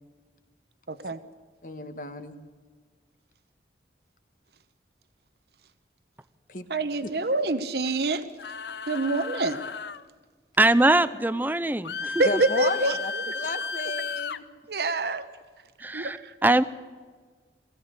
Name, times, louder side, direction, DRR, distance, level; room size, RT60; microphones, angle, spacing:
voice 1, 0.9-1.2 6.7-8.3 8.9-9.6 12.2-13.0 13.3-13.4 14.7-15.3 15.9-16.3, right 2 dB, 65° right, 12 dB, 1.0 m, -26 dB
voice 2, 1.6-2.3 6.5-6.6 7.0-7.1 12.2-14.4, left 2 dB, 50° left, 8 dB, 1.6 m, -33 dB
sound 1, 8.4-10.0 11.8-14.4, left 4 dB, 75° left, 0.8 m, -34 dB
voice 3, 10.6-12.1 15.8-16.2 16.4-16.6, right 2 dB, 10° right, 15 dB, 0.6 m, -21 dB
22.5 x 16.0 x 8.0 m, 1.5 s
head